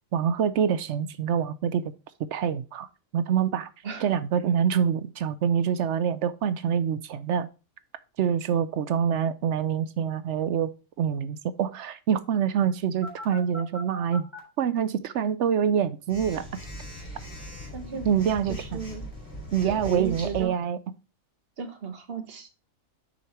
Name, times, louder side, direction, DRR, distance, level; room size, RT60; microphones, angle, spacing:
voice 1, 0.1-1.8 2.3-2.9 3.1-3.7 4.0-7.5 8.2-10.7 11.0-14.3 14.6-16.5 18.0-18.8 19.5-20.8, right 8 dB, 65° right, 0.8 m, -25 dB
Telephone, 13.0-14.4 16.1-20.4, equal, 20° left, 4.1 m, -39 dB
voice 2, 17.7-18.1 18.5-19.0 19.6-20.5 21.6-22.5, right 6 dB, 45° right, 1.3 m, -35 dB
6.4 x 5.3 x 4.4 m
omnidirectional pair, 1.4 m